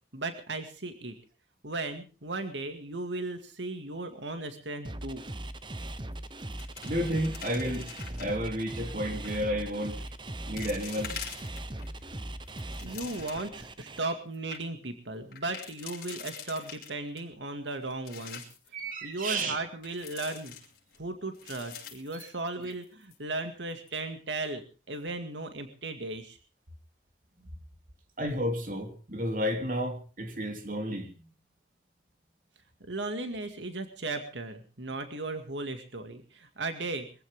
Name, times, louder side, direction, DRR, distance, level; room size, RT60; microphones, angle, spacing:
voice 1, 0.1-1.1 1.6-5.2 12.8-18.5 19.0-20.5 21.0-26.4 32.9-37.1, right 2 dB, 90° right, 2.2 m, -36 dB
sound 1, 4.8-14.0, right 1 dB, 25° right, 0.9 m, -39 dB
sound 2, 5.8-6.1 6.4-8.5 9.1-9.5 10.1-10.2 10.6-11.9 12.3-13.6 14.0-14.1 14.3-14.6 15.3-17.2 17.7-18.7 19.8-21.0 21.3-22.8 23.1-23.2 23.7-24.0, left 8 dB, 55° left, 5.5 m, -45 dB
voice 2, 6.8-7.9 8.2-10.1 10.5-11.2 18.7-19.6 22.2-22.3 27.4-27.5 28.2-31.1, equal, 45° right, 3.2 m, -32 dB
23.0 x 15.5 x 3.7 m
head